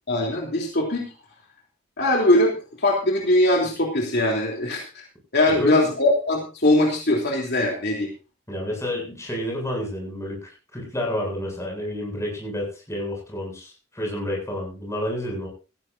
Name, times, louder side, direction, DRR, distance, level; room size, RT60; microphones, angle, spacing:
voice 1, 0.1-1.1 2.0-5.0 5.3-8.1, left 1 dB, 55° left, 0 dB, 3.5 m, -21 dB
voice 2, 5.5-5.9 8.5-15.5, left 1 dB, 15° left, -1 dB, 7.9 m, -30 dB
18.0 x 15.5 x 2.7 m, 0.32 s
head